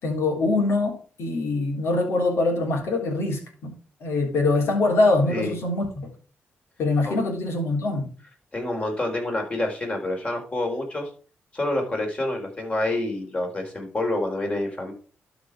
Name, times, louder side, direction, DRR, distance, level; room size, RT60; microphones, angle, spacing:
voice 1, 0.0-6.1 6.8-8.1, left 2 dB, 75° left, 2 dB, 3.5 m, -24 dB
voice 2, 8.5-11.1 11.5-14.9, left 1 dB, 30° left, 2 dB, 4.1 m, -27 dB
12.0 x 5.2 x 4.9 m, 0.38 s
cardioid pair, 100°, 4 cm